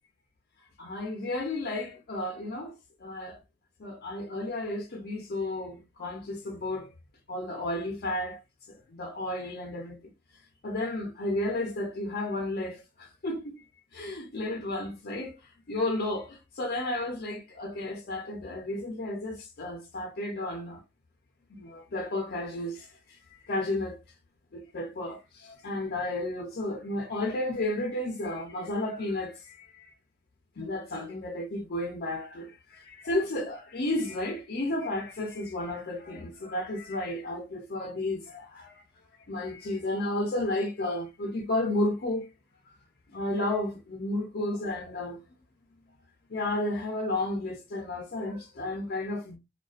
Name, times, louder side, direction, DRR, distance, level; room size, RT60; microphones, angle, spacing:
voice 1, 0.8-2.7 3.0-3.4 3.8-6.9 7.3-8.4 8.9-10.0 10.6-13.6 13.9-15.3 15.7-20.8 21.5-24.0 24.5-29.9 30.6-38.8 39.3-42.3 43.1-45.2 46.3-49.4, left 1 dB, 55° left, 0.5 m, -32 dB
2.3 x 2.2 x 2.4 m
head